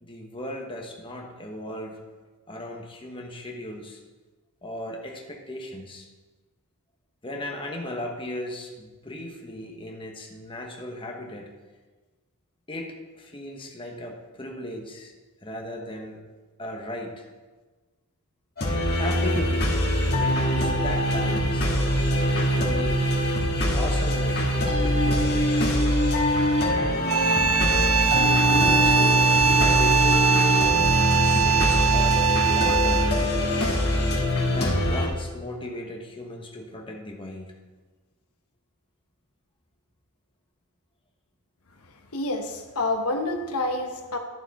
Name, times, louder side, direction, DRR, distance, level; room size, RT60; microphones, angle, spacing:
voice 1, 0.0-2.0 2.5-4.0 4.6-6.1 7.2-11.5 12.7-15.1 15.4-16.2 16.6-17.3 18.9-19.8 20.1-21.7 22.5-23.1 23.7-25.5 26.7-27.1 28.2-30.5 31.1-33.1 34.5-37.5, left 1 dB, 25° left, 1 dB, 1.3 m, -36 dB
sound 1, 18.6-35.1, left 1 dB, 50° left, 1.9 m, -23 dB
sound 2, 27.1-33.3, right 7 dB, 65° right, 0.6 m, -22 dB
voice 2, 42.1-44.2, left 2 dB, 85° left, 4 dB, 1.0 m, -28 dB
12.0 x 6.9 x 4.2 m, 1.3 s
head